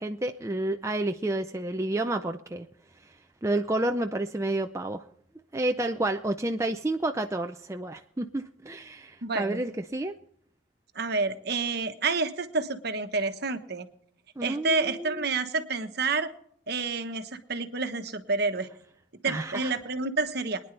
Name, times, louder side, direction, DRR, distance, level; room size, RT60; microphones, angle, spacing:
voice 1, 0.0-2.7 3.4-5.0 5.5-10.1 14.4-15.2 19.3-19.7, right 2 dB, 15° right, 5 dB, 0.5 m, -30 dB
voice 2, 9.2-9.6 10.9-13.9 14.4-16.3 16.7-18.7 19.2-20.6, right 3 dB, 50° right, 8 dB, 1.2 m, -29 dB
23.5 x 10.5 x 3.3 m, 0.67 s
head